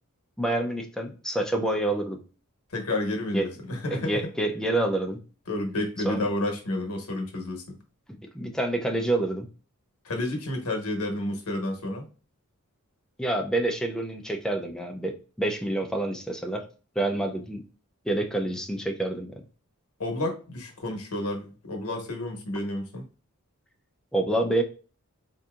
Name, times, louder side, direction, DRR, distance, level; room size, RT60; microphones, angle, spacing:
voice 1, 0.4-2.2 3.3-3.5 3.9-5.2 6.0-6.3 8.3-9.5 13.2-16.6 17.0-17.6 18.1-19.3 24.1-24.6, right 2 dB, 5° left, 3 dB, 0.5 m, -27 dB
voice 2, 2.7-4.2 5.5-7.8 10.0-12.0 20.0-23.0, left 1 dB, 80° left, 2 dB, 1.0 m, -30 dB
3.9 x 2.7 x 2.4 m, 0.36 s
head